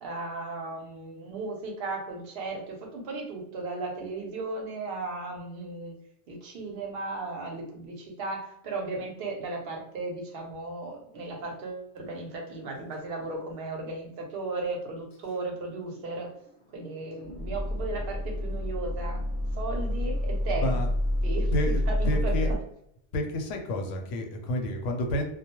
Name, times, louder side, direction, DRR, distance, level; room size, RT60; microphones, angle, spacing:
voice 1, 0.0-6.0 6.3-16.3 16.7-19.2 19.5-20.8 21.2-22.6, right 3 dB, 60° right, 1 dB, 0.8 m, -36 dB
sound 1, 13.4-13.5 15.1-15.2 15.7-22.5, left 1 dB, 50° left, 0.7 m, -29 dB
voice 2, 21.5-22.5 23.1-25.2, left 1 dB, 80° left, 3 dB, 0.9 m, -30 dB
2.3 x 2.0 x 2.9 m, 0.75 s
omnidirectional pair, 1.2 m